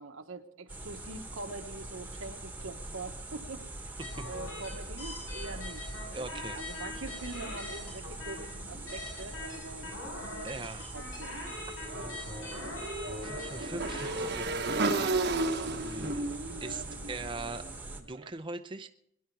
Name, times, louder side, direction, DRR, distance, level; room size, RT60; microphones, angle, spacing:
voice 1, 0.0-6.3 6.5-10.7 10.9-11.6, right 3 dB, 90° right, 5 dB, 1.4 m, -44 dB
sound 1, 0.7-18.0, right 2 dB, 10° right, 1.3 m, -43 dB
sound 2, 4.0-14.4, left 2 dB, 90° left, 5.7 m, -43 dB
voice 2, 6.1-6.6 10.4-10.9 11.9-12.1 13.2-15.3 15.6-16.3 16.6-17.7 18.0-18.9, right 3 dB, 25° right, 7 dB, 0.6 m, -41 dB
Motorcycle / Engine, 11.9-18.0, right 2 dB, 55° right, 1.0 m, -33 dB
22.0 x 10.5 x 4.7 m, 0.74 s
head